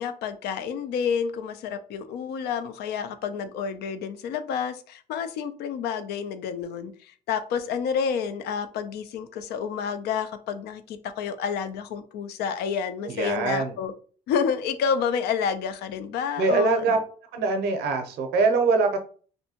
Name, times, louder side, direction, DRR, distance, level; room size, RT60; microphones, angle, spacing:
voice 1, 0.0-13.9 14.3-17.0, left 7 dB, 75° left, 11 dB, 0.4 m, -29 dB
voice 2, 13.0-13.8 16.4-17.0 17.3-19.0, right 4 dB, 75° right, 5 dB, 0.6 m, -23 dB
2.6 x 2.1 x 2.8 m, 0.42 s
cardioid pair, 110°, 17 cm